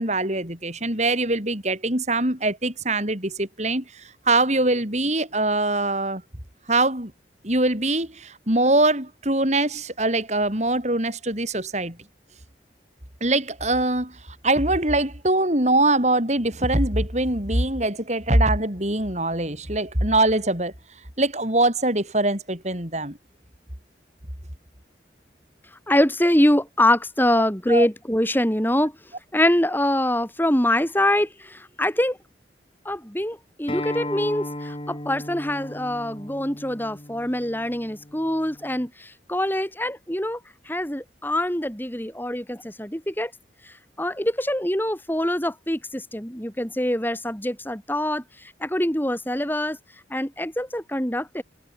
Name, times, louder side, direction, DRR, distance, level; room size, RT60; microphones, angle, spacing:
voice 1, 0.0-6.2 6.7-7.1 7.4-12.0 13.2-20.7 21.2-23.2 27.7-27.9, right 2 dB, 40° right, 7.2 m, -23 dB
voice 2, 25.9-28.9 29.3-32.2 32.9-40.4 40.7-43.3 43.7-48.2 48.6-49.8 50.1-51.4, left 1 dB, 10° left, 5.4 m, -24 dB
Acoustic guitar, 33.7-38.9, left 1 dB, 30° left, 5.3 m, -36 dB
head